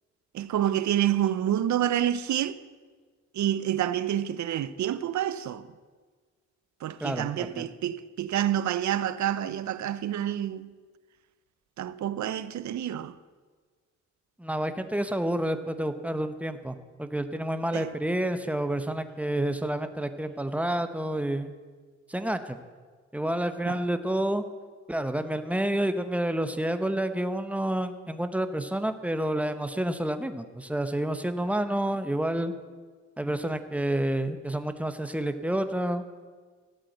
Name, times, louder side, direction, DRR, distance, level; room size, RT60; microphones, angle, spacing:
voice 1, 0.3-2.6 3.3-5.7 6.8-10.7 11.8-13.2 17.7-17.9 23.7-23.8, right 11 dB, 75° right, 0.7 m, -28 dB
voice 2, 7.0-7.7 14.4-21.5 22.1-22.6 23.1-24.4 24.9-32.5 33.2-36.0, right 1 dB, 5° right, 0.8 m, -29 dB
15.0 x 8.6 x 7.8 m
wide cardioid pair, 140°, 29 cm